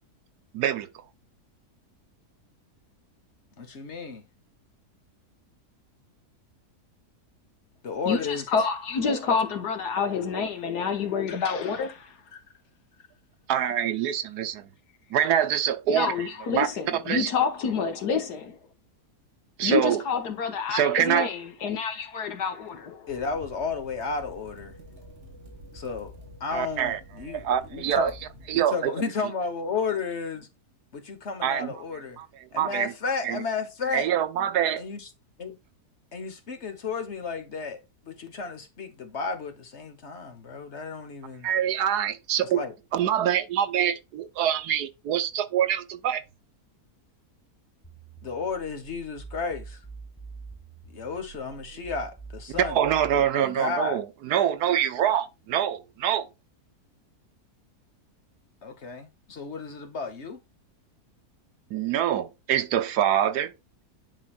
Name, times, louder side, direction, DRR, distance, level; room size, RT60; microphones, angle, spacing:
voice 1, 0.5-0.9 13.5-14.7 15.1-17.3 19.6-20.0 20.7-21.3 26.5-27.0 27.3-28.1 28.5-28.9 31.4-31.7 32.2-32.9 33.2-33.4 33.9-34.8 41.4-42.6 42.9-46.2 52.5-56.3 61.7-63.5, right 10 dB, 75° right, 1.3 m, -25 dB
voice 2, 3.6-4.2 7.8-8.4 23.1-24.8 25.7-26.1 26.4-27.4 27.7-28.1 28.5-30.5 30.9-32.2 32.5-34.1 34.8-35.1 35.4-35.6 36.1-41.5 42.4-42.7 48.2-49.8 50.9-52.8 53.4-54.0 58.6-60.4, left 4 dB, 45° left, 1.4 m, -33 dB
voice 3, 8.1-12.4 15.9-18.6 19.6-23.1, left 5 dB, 75° left, 1.7 m, -28 dB
sound 1, 23.1-28.6, left 1 dB, 40° right, 2.1 m, -48 dB
sound 2, 47.8-53.3, right 4 dB, ahead, 1.1 m, -44 dB
10.5 x 4.0 x 2.4 m
omnidirectional pair, 1.7 m